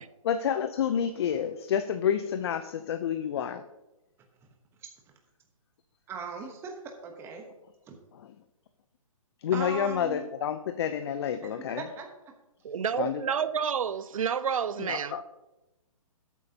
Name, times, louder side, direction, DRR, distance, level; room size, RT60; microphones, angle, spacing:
voice 1, 0.2-3.6 8.1-8.3 9.4-11.8 13.0-13.2 14.8-15.2, left 8 dB, 45° left, 0.6 m, -29 dB
voice 2, 6.1-7.4 7.9-8.0 9.5-10.3 11.4-12.1, right 5 dB, 15° right, 1.0 m, -39 dB
voice 3, 12.7-15.2, right 7 dB, 70° right, 0.5 m, -29 dB
13.0 x 8.3 x 2.8 m
hypercardioid pair, 145°, 18 cm